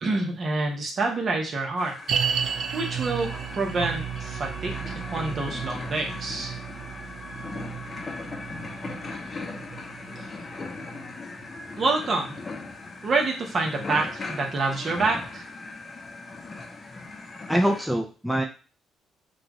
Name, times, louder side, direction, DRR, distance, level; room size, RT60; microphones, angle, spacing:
voice 1, 0.0-1.9 2.3-6.6 10.2-10.3 11.8-12.4 13.0-15.5, right 3 dB, 50° right, 1 dB, 1.3 m, -27 dB
sound 1, 1.8-17.9, left 3 dB, 35° left, 0.8 m, -38 dB
sound 2, 2.1-13.4 13.6-13.7 14.4-14.5, right 8 dB, 65° right, 0.4 m, -34 dB
voice 2, 17.5-18.4, equal, ahead, 3 dB, 0.6 m, -24 dB
5.9 x 2.5 x 3.1 m, 0.34 s
cardioid pair, 90°, 0 cm